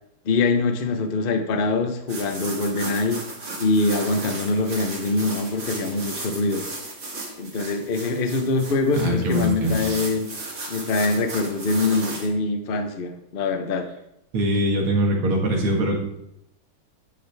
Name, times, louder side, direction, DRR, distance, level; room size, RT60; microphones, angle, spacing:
voice 1, 0.2-3.2 3.6-6.6 7.4-10.3 10.7-13.9, left 3 dB, 60° left, 6 dB, 0.5 m, -24 dB
sound 1, 2.1-12.3, right 2 dB, 60° right, 3.0 m, -35 dB
voice 2, 8.9-10.0 14.3-16.0, equal, 80° right, 0 dB, 2.6 m, -22 dB
10.0 x 7.0 x 3.4 m, 0.83 s
omnidirectional pair, 2.4 m